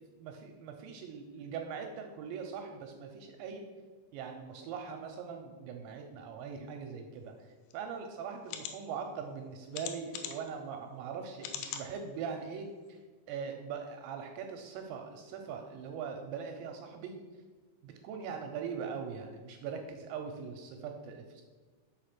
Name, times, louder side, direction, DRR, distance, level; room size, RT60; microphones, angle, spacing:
voice 1, 0.2-3.7 4.1-13.0 13.3-17.1 17.8-21.4, right 6 dB, 80° right, 4 dB, 2.7 m, -41 dB
sound 1, 7.7-7.8 8.4-8.7 9.7-10.5 11.4-11.9 12.4-12.5 12.9-13.0, left 9 dB, 80° left, 2.6 m, -40 dB
6.4 x 5.1 x 5.9 m, 1.4 s
omnidirectional pair, 5.6 m